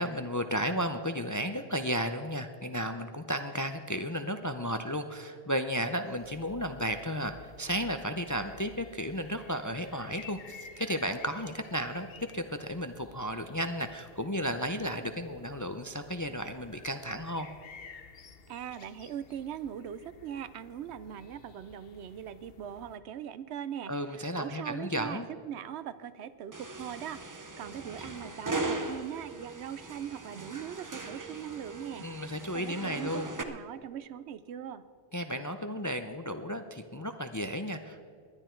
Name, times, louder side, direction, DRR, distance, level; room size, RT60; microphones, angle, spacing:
voice 1, 0.0-17.5 23.9-25.3 32.0-33.3 35.1-38.0, equal, 25° left, 8 dB, 0.4 m, -33 dB
sound 1, 6.1-23.0, left 5 dB, 60° left, 1.0 m, -53 dB
voice 2, 18.5-23.9 24.4-32.1 32.5-34.8, right 9 dB, 80° right, 15 dB, 0.9 m, -40 dB
sound 2, 26.5-33.4, right 2 dB, 20° right, 0.6 m, -39 dB
19.5 x 11.5 x 4.5 m, 2.1 s
omnidirectional pair, 1.1 m